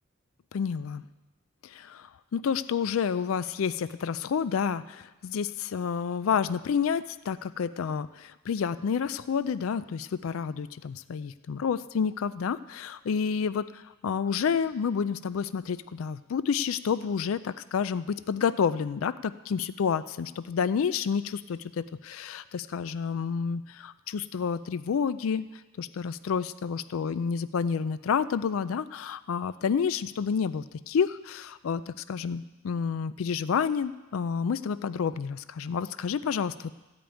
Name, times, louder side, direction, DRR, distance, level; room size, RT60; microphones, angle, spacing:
voice 1, 0.5-1.0 1.6-25.5 25.8-36.8, left 6 dB, 75° left, 14 dB, 0.4 m, -29 dB
14.0 x 5.2 x 8.9 m, 1.1 s
head